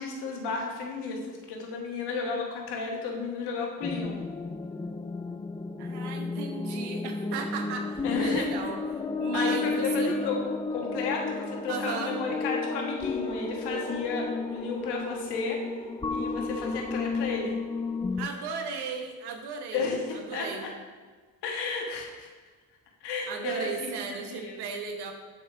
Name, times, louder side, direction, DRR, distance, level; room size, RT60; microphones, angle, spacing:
voice 1, 0.0-4.2 8.0-8.5 9.3-10.5 10.7-15.6 16.1-17.5 19.7-20.7 21.4-22.3 23.0-24.6, left 4 dB, 85° left, 0 dB, 1.4 m, -33 dB
sound 1, 3.8-18.3, left 3 dB, 15° left, 0.5 m, -32 dB
voice 2, 5.8-10.1 11.7-12.2 18.2-19.8 20.1-20.7 23.3-25.1, right 5 dB, 85° right, 4 dB, 1.1 m, -35 dB
7.6 x 7.5 x 3.5 m, 1.4 s
supercardioid pair, 50°, 39 cm